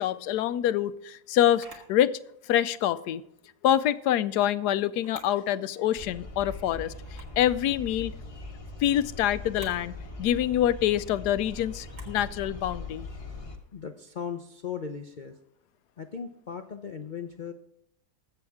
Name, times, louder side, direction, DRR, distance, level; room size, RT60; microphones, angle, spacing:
voice 1, 0.0-2.2 2.4-3.2 3.6-8.1 8.8-13.1, left 11 dB, 80° left, 15 dB, 1.1 m, -26 dB
Camera, 1.6-1.9 3.6-4.0 4.9-5.4 5.8-5.9 7.0-7.4 9.4-9.8 11.9-12.2, right 2 dB, 50° right, 2.5 m, -49 dB
sound 1, 6.0-13.6, left 3 dB, 25° left, 1.0 m, -41 dB
voice 2, 13.7-15.4 16.0-17.5, left 6 dB, 65° left, 7 dB, 0.4 m, -37 dB
21.0 x 8.0 x 3.6 m, 0.78 s
omnidirectional pair, 1.7 m